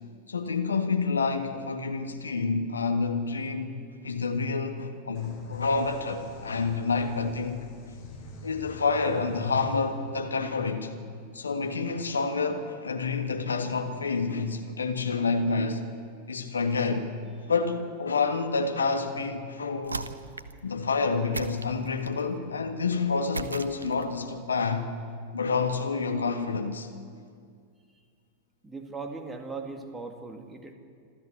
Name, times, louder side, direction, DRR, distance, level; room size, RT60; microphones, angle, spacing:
voice 1, 0.3-3.8 4.0-7.7 8.4-10.9 11.3-15.8 16.3-17.1 17.5-20.0 20.6-24.9 25.3-26.9, left 4 dB, 75° left, 6 dB, 1.7 m, -28 dB
sound 1, 5.1-12.7, equal, 40° left, 7.4 m, -45 dB
sound 2, 19.8-20.6 21.3-22.3 23.3-24.2, right 4 dB, 75° right, 0.8 m, -37 dB
voice 2, 28.6-30.7, right 4 dB, 15° right, 5 dB, 2.3 m, -39 dB
26.5 x 13.5 x 8.2 m, 2.1 s
figure-of-eight pair, 90°, 0 cm